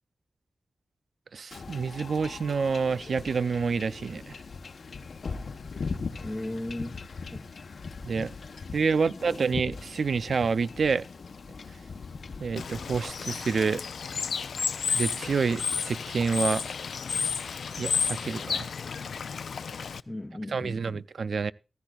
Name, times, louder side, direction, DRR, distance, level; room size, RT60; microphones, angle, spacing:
voice 1, 1.3-4.4 8.0-8.3 8.7-11.0 12.4-13.8 14.9-16.6 17.8-18.7 20.5-21.5, right 5 dB, 75° right, 0.5 m, -28 dB
Wind / Ocean / Boat Water vehicle, 1.5-13.1, left 4 dB, 70° left, 1.0 m, -40 dB
voice 2, 6.2-7.0 7.3-7.4 8.2-8.3 9.1-9.4 20.1-21.0, left 1 dB, 20° left, 0.8 m, -37 dB
Bird / Water, 12.6-20.0, left 6 dB, 90° left, 0.5 m, -32 dB
15.0 x 14.5 x 2.4 m
wide cardioid pair, 85°, 0 cm